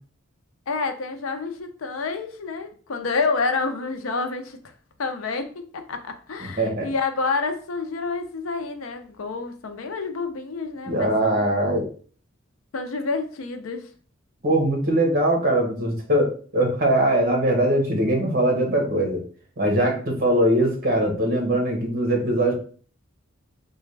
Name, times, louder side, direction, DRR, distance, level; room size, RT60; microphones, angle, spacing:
voice 1, 0.7-4.6 5.0-5.5 5.7-11.5 12.7-13.9, left 4 dB, 85° left, 7 dB, 0.5 m, -28 dB
voice 2, 6.4-6.9 10.9-11.9 14.4-19.2 19.6-22.5, right 1 dB, 45° right, 2 dB, 1.0 m, -21 dB
4.0 x 2.3 x 3.2 m, 0.42 s
head